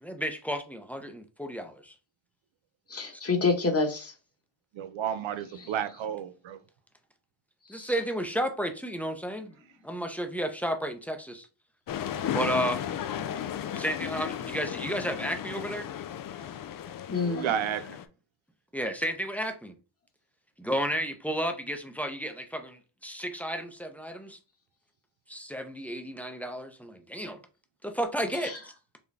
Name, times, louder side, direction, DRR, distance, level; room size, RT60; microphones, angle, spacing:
voice 1, 0.0-1.9 7.7-9.5 9.8-11.5 12.3-12.8 13.7-15.9 18.7-19.7 20.6-24.4 25.3-27.4 27.8-28.7, equal, 5° left, 0.7 m, -32 dB
voice 2, 2.9-4.1 7.7-7.9 17.1-17.5 28.4-28.6, left 4 dB, 30° left, 1.2 m, -28 dB
voice 3, 4.7-6.6 17.2-18.0, right 9 dB, 70° right, 0.6 m, -32 dB
sound 1, 11.9-18.0, left 10 dB, 45° left, 0.4 m, -35 dB
4.0 x 2.2 x 3.3 m
cardioid pair, 65°, 49 cm